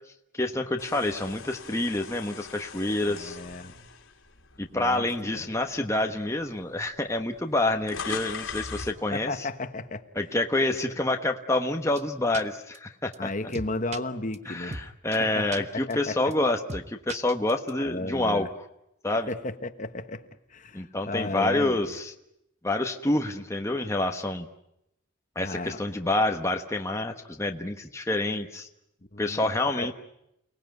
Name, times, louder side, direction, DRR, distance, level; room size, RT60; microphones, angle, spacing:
voice 1, 0.3-3.4 4.6-9.3 10.2-13.3 14.5-18.5 19.0-19.3 20.7-22.1 22.6-24.5 25.3-28.7 29.2-29.9, left 2 dB, 15° left, 4 dB, 1.2 m, -27 dB
sound 1, 0.8-5.0 5.5-5.7 6.6-6.7 6.9-9.0, left 5 dB, 90° left, 3.2 m, -40 dB
voice 2, 3.0-3.7 4.7-5.1 5.3-5.5 9.1-10.3 13.2-14.8 15.3-15.5 15.7-16.2 17.8-18.5 19.3-21.9 25.4-25.8 29.1-29.9, left 2 dB, 40° left, 9 dB, 1.3 m, -34 dB
sound 2, 12.0-12.1 12.3-12.4 12.7-12.8 13.1-13.2 13.5-14.0 14.3-14.4 14.7-14.8 15.1-15.2 15.5-15.6 15.9-16.0 16.3-16.4 16.7-16.8 17.1-17.7, right 3 dB, 35° right, 1.1 m, -36 dB
29.5 x 19.0 x 9.4 m, 0.83 s
head